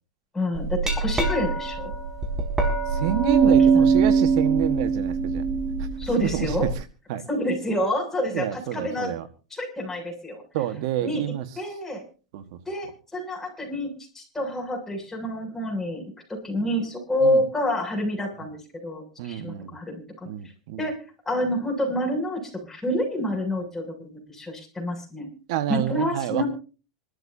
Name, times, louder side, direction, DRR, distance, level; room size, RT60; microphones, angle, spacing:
voice 1, 0.3-1.9 3.4-3.9 6.0-6.7 7.3-9.1 9.5-10.4 11.0-11.2 11.6-12.0 12.7-16.0 16.4-20.0 20.8-21.0 21.3-25.3 25.7-26.5, left 1 dB, 10° left, 1 dB, 7.4 m, -28 dB
Glass, 0.6-6.7, right 5 dB, 20° right, 5.3 m, -22 dB
voice 2, 2.9-5.4 6.2-6.7 7.1-7.2 8.3-9.2 10.5-11.4 12.3-12.4 17.2-17.4 19.2-19.7 20.3-20.8 25.5-26.4, right 12 dB, 65° right, 10 dB, 1.5 m, -28 dB
26.5 x 13.5 x 2.8 m, 0.36 s
hypercardioid pair, 110°, 3 cm